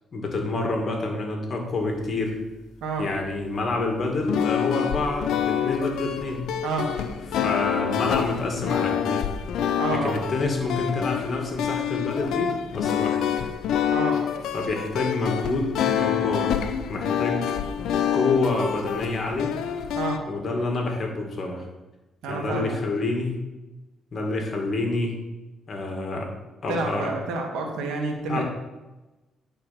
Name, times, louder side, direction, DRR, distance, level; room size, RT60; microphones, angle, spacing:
voice 1, 0.1-2.4 3.0-6.4 7.3-9.3 9.9-13.2 14.5-16.6 16.9-17.5 18.1-19.6 20.3-21.7 22.3-23.4 24.1-25.2 25.7-26.3 26.6-27.1 28.3-28.4, left 3 dB, 50° left, 2 dB, 2.1 m, -27 dB
sound 1, 4.2-20.2, left 9 dB, 80° left, 0.6 m, -27 dB
voice 2, 9.8-10.2 13.9-14.2 20.0-20.2 22.2-22.8 26.7-28.4, right 3 dB, 85° right, 1 dB, 1.5 m, -29 dB
9.1 x 4.4 x 5.9 m, 1.1 s
cardioid pair, 90°, 0 cm